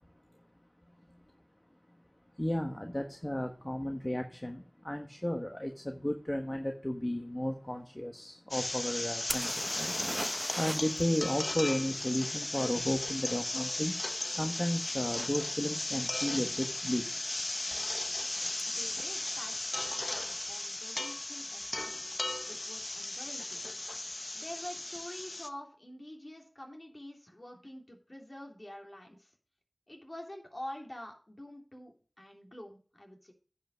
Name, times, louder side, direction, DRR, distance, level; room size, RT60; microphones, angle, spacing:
voice 1, 2.4-10.3 10.6-17.3 17.7-17.8 18.4-18.5, left 1 dB, 30° left, 1.3 m, -34 dB
sound 1, 8.5-25.5, left 1 dB, 65° left, 0.8 m, -36 dB
sound 2, 9.3-11.0 11.3-11.4 14.8-14.9 15.5-15.7 16.0-16.6 18.6-18.7 19.0-19.1, right 1 dB, 20° right, 0.9 m, -38 dB
voice 2, 18.6-22.1 22.4-23.6 24.3-29.3 29.9-33.3, left 1 dB, 45° left, 3.4 m, -47 dB
10.0 x 5.7 x 6.2 m
wide cardioid pair, 40°, 0 cm